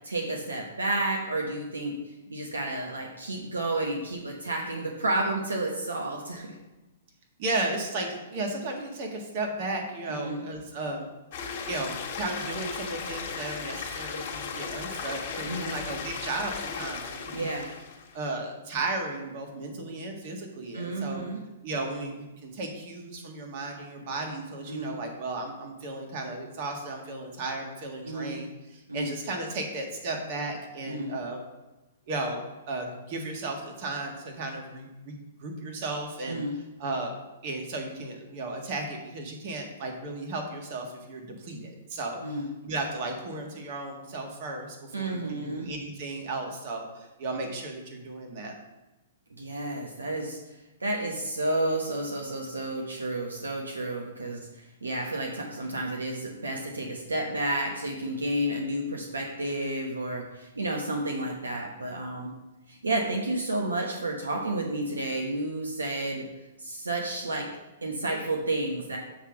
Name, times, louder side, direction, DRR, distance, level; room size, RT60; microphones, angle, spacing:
voice 1, 0.0-6.6 10.1-10.4 15.5-15.7 17.3-17.7 20.7-21.4 24.7-24.9 28.0-28.4 28.9-29.1 30.9-31.1 36.3-36.5 42.2-42.5 44.9-45.7 49.4-50.4 50.8-62.3 62.7-66.3 66.6-67.5 67.8-69.0, right 1 dB, 85° right, 1 dB, 1.0 m, -31 dB
voice 2, 7.4-11.1 11.7-17.5 18.1-21.3 21.6-31.4 32.1-36.4 36.8-37.1 37.4-42.2 42.6-48.5, right 2 dB, 45° right, 2 dB, 1.7 m, -35 dB
sound 1, 11.3-18.2, left 6 dB, 50° left, 1.5 m, -36 dB
7.1 x 3.5 x 6.3 m, 1.1 s
figure-of-eight pair, 115°, 0 cm